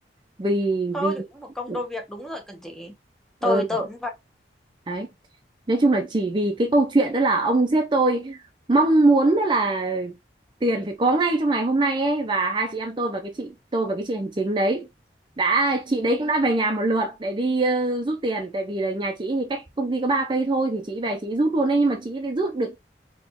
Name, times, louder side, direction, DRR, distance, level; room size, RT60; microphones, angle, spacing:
voice 1, 0.4-1.1 1.7-1.8 3.4-3.7 4.9-5.1 5.7-8.4 8.7-10.2 10.6-14.9 15.4-22.8, right 2 dB, 25° right, 0.5 m, -23 dB
voice 2, 0.9-2.9 3.4-4.1, left 2 dB, 5° left, 0.8 m, -29 dB
4.2 x 3.0 x 2.8 m
head